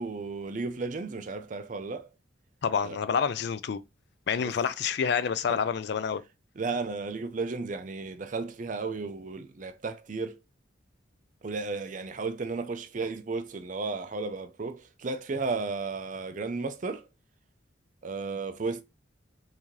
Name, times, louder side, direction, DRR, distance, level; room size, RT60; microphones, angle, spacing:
voice 1, 0.0-2.1 2.8-3.0 4.4-4.6 5.5-5.6 6.6-10.4 11.4-17.0 18.0-18.8, right 3 dB, 40° right, 0.4 m, -34 dB
voice 2, 2.6-3.8 4.3-6.2, left 6 dB, 55° left, 0.3 m, -28 dB
3.1 x 2.7 x 3.6 m
head